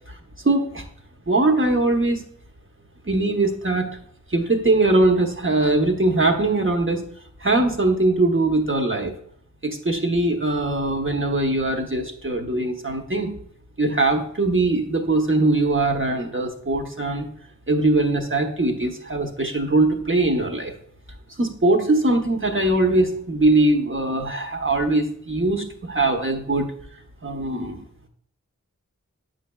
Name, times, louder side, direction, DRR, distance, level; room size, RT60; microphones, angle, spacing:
voice 1, 0.4-0.8 1.3-2.2 3.0-3.9 4.3-7.0 7.4-9.1 9.6-13.3 13.8-17.3 17.7-20.7 21.4-26.7 27.2-27.8, right 2 dB, 40° right, 3 dB, 1.0 m, -21 dB
8.0 x 5.3 x 2.3 m, 0.64 s
wide cardioid pair, 45°, 31 cm